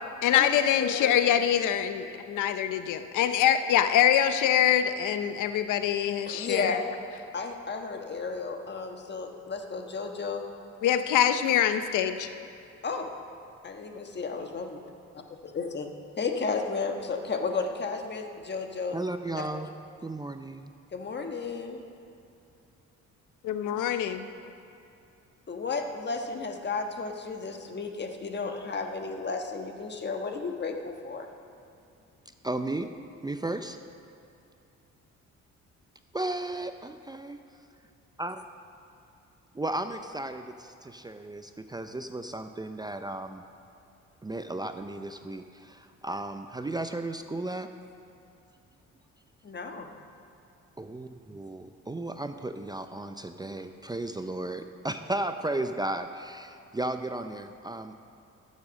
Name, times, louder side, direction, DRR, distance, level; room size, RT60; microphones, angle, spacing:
voice 1, 0.2-6.8 10.8-12.3 23.4-24.3, left 10 dB, 80° left, 10 dB, 0.7 m, -24 dB
voice 2, 0.8-1.3 6.3-6.9 7.3-10.4 12.8-13.1 13.6-14.8 15.1-15.9 16.2-19.0 19.3-19.7 20.9-21.8 25.5-31.3 49.4-49.9, left 4 dB, 35° left, 4 dB, 1.3 m, -33 dB
voice 3, 18.9-19.7 20.0-20.7 32.4-32.9 33.2-33.8 36.1-37.4 38.2-38.4 39.5-43.4 44.2-47.7 50.8-57.9, right 2 dB, 15° right, 8 dB, 0.5 m, -34 dB
13.5 x 7.4 x 6.3 m, 2.7 s
cardioid pair, 90°, 30 cm